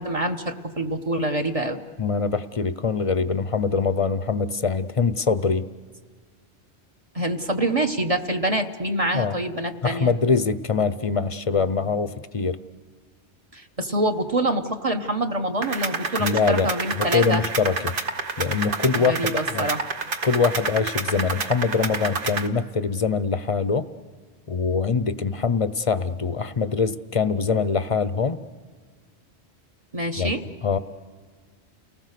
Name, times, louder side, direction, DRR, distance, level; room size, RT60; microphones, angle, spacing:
voice 1, 0.0-1.8 7.1-10.1 13.5-17.4 19.0-19.9 29.9-30.4, right 1 dB, 35° right, 4 dB, 1.2 m, -26 dB
voice 2, 2.0-5.7 9.1-9.4 9.8-12.6 16.2-17.9 18.4-19.7 20.2-23.9 24.5-28.4 30.2-30.3 30.6-30.8, left 5 dB, 35° left, 13 dB, 0.7 m, -23 dB
sound 1, 15.6-22.5, right 4 dB, 55° right, 1.3 m, -29 dB
29.5 x 19.5 x 6.7 m, 1.5 s
omnidirectional pair, 1.1 m